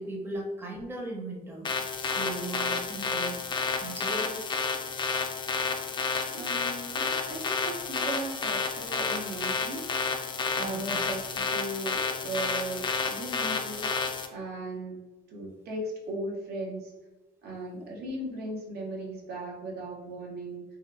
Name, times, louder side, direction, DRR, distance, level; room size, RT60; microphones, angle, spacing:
voice 1, 0.0-1.7 2.0-3.4 3.8-4.4 10.5-11.0, right 2 dB, 15° right, -1 dB, 0.6 m, -37 dB
sound 1, 1.6-14.3, left 4 dB, 30° left, 0.3 m, -31 dB
voice 2, 6.3-10.0 10.5-13.9 14.3-15.0 15.3-16.9 17.4-20.6, right 2 dB, 70° right, -1 dB, 0.7 m, -37 dB
2.8 x 2.2 x 2.4 m, 1.2 s
cardioid pair, 110°, 17 cm